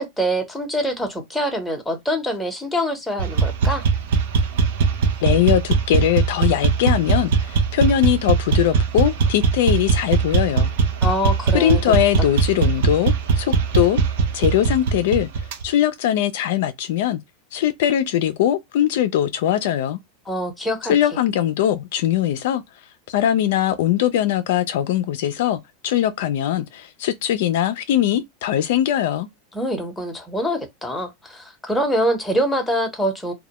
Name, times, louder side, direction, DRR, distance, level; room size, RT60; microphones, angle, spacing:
voice 1, 0.0-3.8 11.0-11.8 20.3-20.9 29.5-33.3, equal, 5° left, 0.8 m, -24 dB
sound 1, 3.2-15.6, right 5 dB, 75° right, 0.5 m, -20 dB
voice 2, 5.2-10.7 11.5-14.0 14.3-15.3 15.6-17.2 17.5-20.0 20.9-22.6 23.1-29.3, left 11 dB, 70° left, 0.3 m, -21 dB
2.1 x 2.0 x 2.9 m
supercardioid pair, 125°, 0 cm